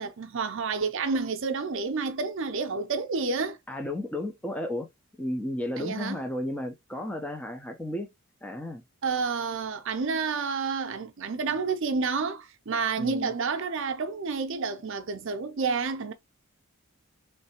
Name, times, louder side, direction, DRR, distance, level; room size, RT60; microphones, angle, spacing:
voice 1, 0.0-3.6 5.8-6.2 9.0-16.1, right 4 dB, 60° right, 0.5 m, -29 dB
voice 2, 3.7-4.9 5.2-8.1 8.4-8.8 13.0-13.3, left 1 dB, 5° left, 0.5 m, -33 dB
3.2 x 3.2 x 2.9 m
head